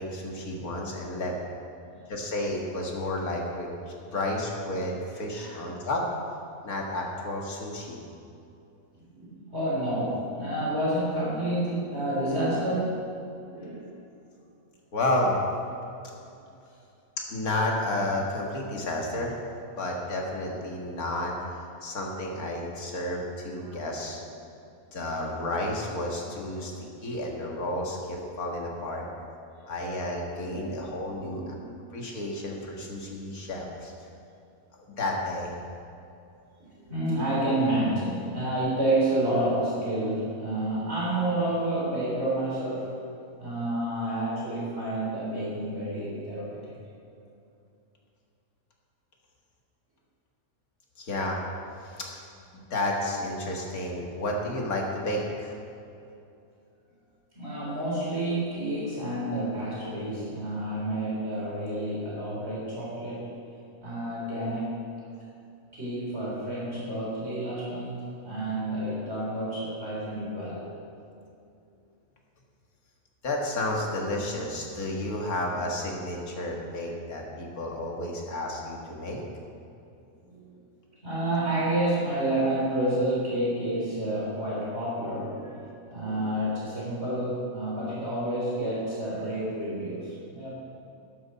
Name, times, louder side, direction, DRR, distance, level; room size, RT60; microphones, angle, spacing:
voice 1, 0.0-1.3 2.1-6.0 6.6-8.0 14.9-15.4 17.2-19.3 19.8-24.2 24.9-26.7 27.0-29.1 29.7-31.6 31.9-33.9 35.0-35.5 51.0-51.4 51.8-52.2 52.5-55.5 73.2-79.2, left 1 dB, 85° left, -1 dB, 2.3 m, -31 dB
voice 2, 9.1-13.0 13.5-14.0 23.6-23.8 26.6-26.7 27.0-27.1 30.4-30.8 31.1-31.9 36.8-42.9 43.4-46.7 57.4-63.3 63.8-64.9 65.7-70.6 80.2-80.5 81.0-90.5, right 1 dB, 45° right, -7 dB, 3.9 m, -29 dB
12.5 x 12.5 x 4.2 m, 2.6 s
omnidirectional pair, 1.5 m